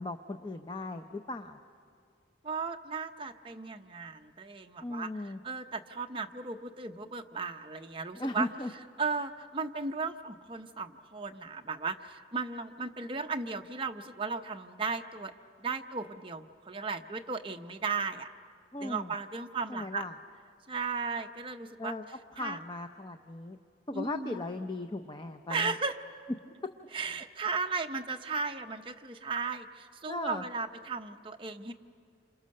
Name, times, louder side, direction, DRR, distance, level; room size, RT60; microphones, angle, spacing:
voice 1, 0.0-1.6 4.8-5.4 8.2-8.7 18.7-19.1 19.7-20.1 21.8-22.0 22.3-23.6 23.9-25.7 30.1-30.4, left 2 dB, 25° left, 6 dB, 0.6 m, -37 dB
voice 2, 2.4-8.5 9.0-15.3 15.6-18.3 18.8-20.0 20.7-21.9 22.4-22.6 23.9-24.4 25.5-26.0 26.9-31.7, right 4 dB, 25° right, 5 dB, 0.8 m, -36 dB
28.0 x 27.0 x 6.6 m, 2.3 s
head